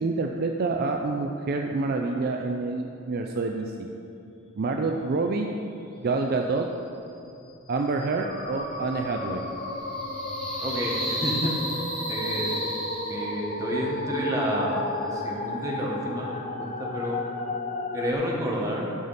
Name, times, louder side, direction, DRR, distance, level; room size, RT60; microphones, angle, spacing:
voice 1, 0.0-3.7 4.6-5.5 6.0-6.7 7.7-9.5, right 3 dB, 45° right, 3 dB, 0.4 m, -27 dB
sound 1, 7.7-13.6, equal, 5° left, 1.6 m, -34 dB
sound 2, 8.2-18.1, left 2 dB, 35° left, 0.7 m, -33 dB
voice 2, 10.6-11.5 12.1-12.5 13.1-17.2 17.9-18.9, equal, 15° right, -3 dB, 1.2 m, -30 dB
11.0 x 5.0 x 4.1 m, 2.8 s
head